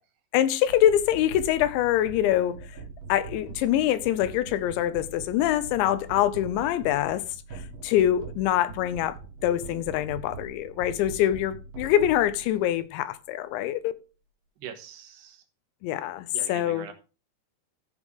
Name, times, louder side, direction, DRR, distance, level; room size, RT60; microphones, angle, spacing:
voice 1, 0.3-2.6 3.1-7.2 7.5-9.2 9.4-13.9 15.8-16.9, left 12 dB, 85° left, 3.1 m, -24 dB
sound 1, 0.7-12.8, right 4 dB, 60° right, 3.5 m, -42 dB
voice 2, 14.6-15.4 16.3-16.9, right 8 dB, 75° right, 3.3 m, -42 dB
14.5 x 6.5 x 3.6 m
omnidirectional pair, 5.1 m